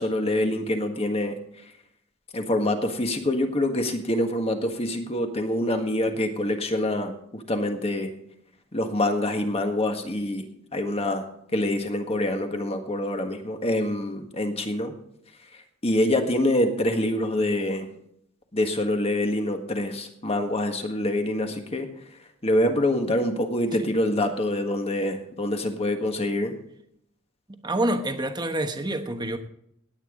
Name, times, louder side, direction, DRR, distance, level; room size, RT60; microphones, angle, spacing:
voice 1, 0.0-1.3 2.3-8.1 8.7-11.3 11.5-14.9 15.5-17.9 18.5-21.9 22.4-26.5, left 1 dB, 30° left, 5 dB, 1.6 m, -26 dB
voice 2, 27.5-29.4, right 1 dB, 20° right, 7 dB, 1.1 m, -27 dB
18.0 x 9.2 x 3.8 m, 0.72 s
head